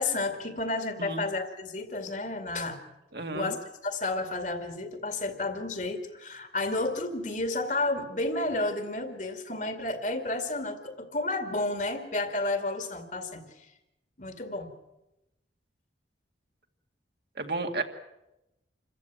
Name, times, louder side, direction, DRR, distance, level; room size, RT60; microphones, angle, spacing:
voice 1, 0.0-2.8 3.3-3.6 3.8-13.4 14.2-14.7, left 2 dB, 45° left, 7 dB, 2.3 m, -31 dB
voice 2, 3.1-3.5 17.4-17.8, right 3 dB, 60° right, 5 dB, 2.1 m, -32 dB
27.5 x 14.5 x 9.3 m, 0.93 s
head